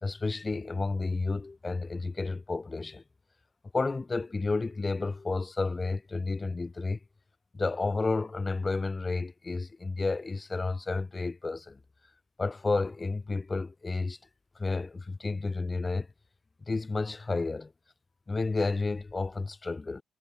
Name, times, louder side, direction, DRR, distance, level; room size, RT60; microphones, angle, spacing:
voice 1, 0.0-3.0 3.7-7.0 7.5-11.8 12.4-14.2 14.5-16.1 16.7-17.7 18.3-20.0, left 3 dB, 25° left, 3.3 m, -31 dB
cardioid pair, 90°, 0 cm